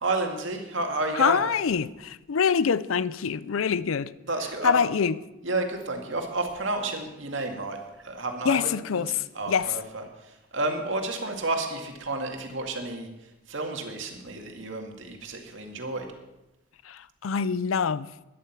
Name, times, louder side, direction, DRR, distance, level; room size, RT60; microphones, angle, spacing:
voice 1, 0.0-1.4 4.3-4.7 5.4-7.8 8.0-9.1 9.4-10.0 10.5-13.1 13.5-16.1, right 2 dB, 70° right, 2.1 m, -31 dB
voice 2, 1.1-4.1 4.6-5.1 8.4-9.8 16.8-18.1, left 6 dB, 85° left, 0.5 m, -25 dB
12.5 x 11.0 x 5.9 m
head